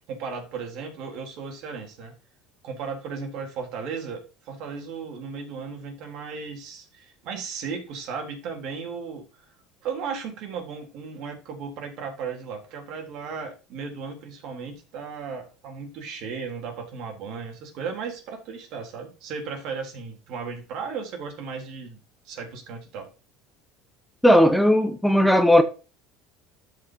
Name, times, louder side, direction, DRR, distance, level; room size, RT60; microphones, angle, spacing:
voice 1, 0.1-2.1 2.6-9.3 9.8-22.0 22.3-23.1, right 5 dB, 60° right, 3.7 m, -35 dB
voice 2, 24.2-25.6, left 1 dB, ahead, 0.9 m, -17 dB
13.0 x 5.7 x 2.9 m
supercardioid pair, 115°, 0 cm